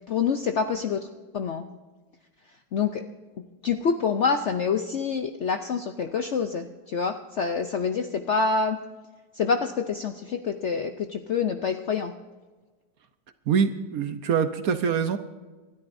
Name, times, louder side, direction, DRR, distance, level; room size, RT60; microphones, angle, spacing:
voice 1, 0.1-1.1 1.3-1.7 2.7-3.0 3.6-8.8 9.3-12.1, left 5 dB, 65° left, 6 dB, 0.7 m, -26 dB
voice 2, 13.5-15.2, right 6 dB, 65° right, 9 dB, 1.1 m, -24 dB
29.0 x 13.0 x 2.6 m, 1.3 s
omnidirectional pair, 1.9 m